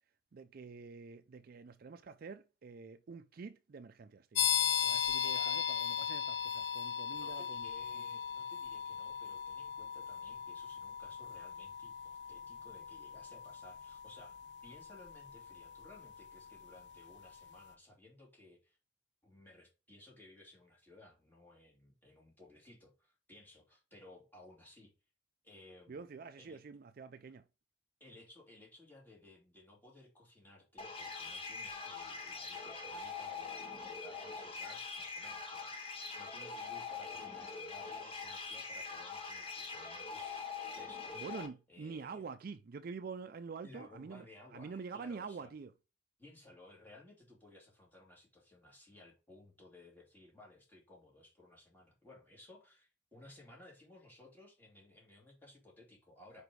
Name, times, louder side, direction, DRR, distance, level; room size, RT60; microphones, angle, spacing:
voice 1, 0.3-4.4 4.9-7.7 7.9-8.0 25.9-27.4 41.2-44.2 44.5-45.7, right 5 dB, 50° right, 0.4 m, -47 dB
sound 1, 4.3-16.9, left 8 dB, 65° left, 0.8 m, -38 dB
voice 2, 4.8-5.6 6.7-6.8 7.1-18.8 19.2-24.9 25.4-26.0 26.4-26.6 28.0-40.5 40.8-41.2 41.7-42.2 43.6-45.5 46.2-56.4, left 1 dB, 10° left, 2.7 m, -58 dB
sound 2, 30.8-41.5, left 4 dB, 30° left, 1.0 m, -43 dB
5.0 x 4.9 x 4.7 m
head